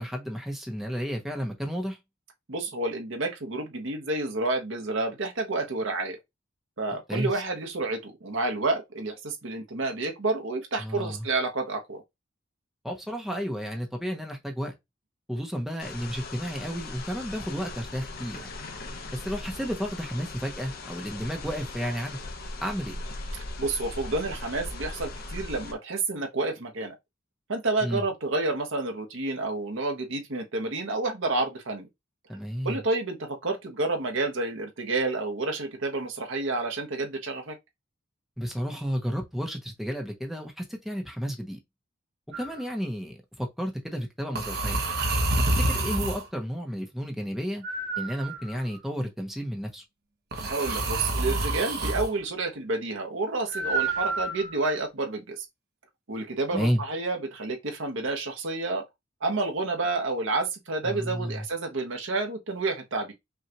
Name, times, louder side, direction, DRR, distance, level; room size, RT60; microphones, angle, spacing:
voice 1, 0.0-2.0 7.1-7.4 10.8-11.3 12.8-14.7 15.3-18.5 19.1-22.2 22.6-23.0 27.8-28.0 32.3-32.8 38.4-41.6 42.3-44.9 45.6-47.6 48.0-49.8 56.5-56.8 60.8-61.4, equal, ahead, 0.8 m, -32 dB
voice 2, 2.5-6.2 6.8-12.0 23.6-26.9 27.5-31.9 32.6-37.5 50.4-55.4 56.1-58.8 59.2-63.1, right 2 dB, 70° right, 1.1 m, -29 dB
sound 1, 15.8-25.7, left 2 dB, 50° left, 0.9 m, -39 dB
sound 2, 42.3-42.6 44.3-46.3 47.6-48.7 50.3-52.1 53.5-54.7, right 2 dB, 55° right, 1.0 m, -28 dB
5.6 x 2.4 x 2.9 m
head